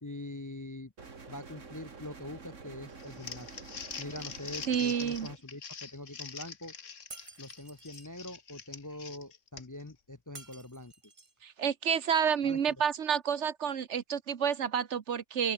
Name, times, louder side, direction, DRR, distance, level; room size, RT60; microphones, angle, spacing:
voice 1, 0.0-0.9 1.3-3.5 4.0-6.7 7.4-10.9 12.4-12.6, left 1 dB, 20° left, 0.6 m, -44 dB
sound 1, 1.0-5.4, right 4 dB, 90° right, 2.7 m, -48 dB
Crumpling crinkling, 3.0-9.9, left 6 dB, 90° left, 1.9 m, -44 dB
voice 2, 4.7-5.3 11.4-15.5, right 7 dB, 70° right, 1.3 m, -29 dB
Shatter, 7.1-8.1 10.4-11.4, right 3 dB, 25° right, 1.5 m, -50 dB
open air
omnidirectional pair, 1.3 m